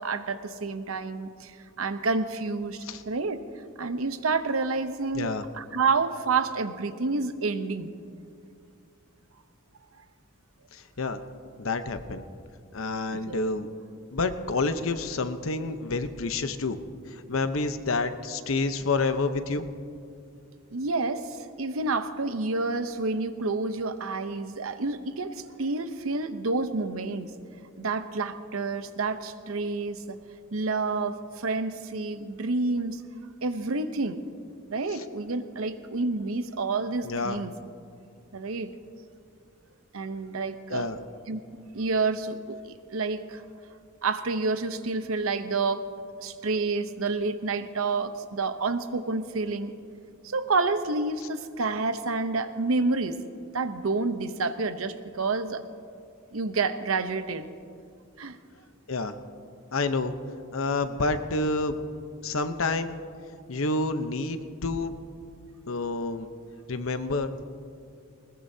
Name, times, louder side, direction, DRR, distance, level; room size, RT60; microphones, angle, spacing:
voice 1, 0.0-3.4 3.8-7.9 13.1-13.4 20.7-27.3 27.8-30.2 30.5-33.0 33.4-34.2 34.7-37.5 38.3-38.7 39.9-40.9 41.3-43.4 44.0-45.9 46.2-49.7 50.2-53.2 53.5-55.6 56.3-57.5 58.2-58.4, right 3 dB, 85° right, 10 dB, 0.8 m, -29 dB
voice 2, 5.1-5.5 10.7-11.2 11.6-12.2 12.7-13.7 14.1-16.8 17.1-19.7 34.9-35.0 37.0-37.4 40.7-41.0 58.9-59.2 59.7-60.1 60.5-61.8 62.2-62.9 63.5-64.9 65.7-66.3 66.7-67.5, left 3 dB, 75° left, 9 dB, 0.9 m, -28 dB
20.5 x 20.0 x 2.8 m, 2.4 s
head